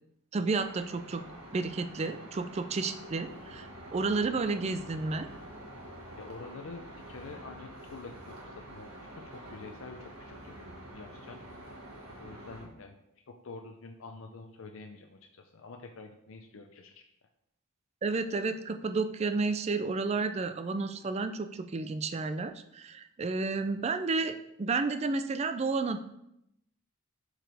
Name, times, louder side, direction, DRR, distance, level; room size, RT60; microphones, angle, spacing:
voice 1, 0.3-1.3 1.5-5.3 18.0-26.0, right 3 dB, 30° right, 9 dB, 0.4 m, -31 dB
sound 1, 0.6-12.7, right 1 dB, 90° right, 1.5 m, -47 dB
voice 2, 6.2-10.6 10.9-11.4 12.2-13.0 13.3-17.0, left 3 dB, 70° left, 4 dB, 0.5 m, -47 dB
7.6 x 4.8 x 3.4 m, 0.79 s
head